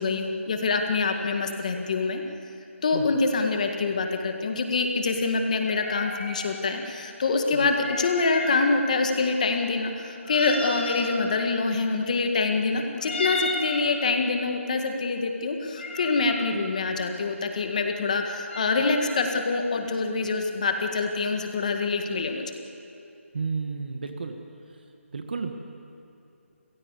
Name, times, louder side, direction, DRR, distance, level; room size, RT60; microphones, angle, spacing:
voice 1, 0.0-2.2 2.8-22.4, left 4 dB, 30° left, 4 dB, 1.9 m, -25 dB
sound 1, 5.7-6.4 7.7-8.6 10.2-11.1 13.0-13.8 15.7-16.5 18.5-19.2, left 2 dB, 55° left, 4.6 m, -33 dB
voice 2, 23.3-24.4 24.7-24.8 25.1-25.5, right 4 dB, 45° right, 6 dB, 1.6 m, -32 dB
30.0 x 16.0 x 8.4 m, 2.7 s
hypercardioid pair, 175°, 7 cm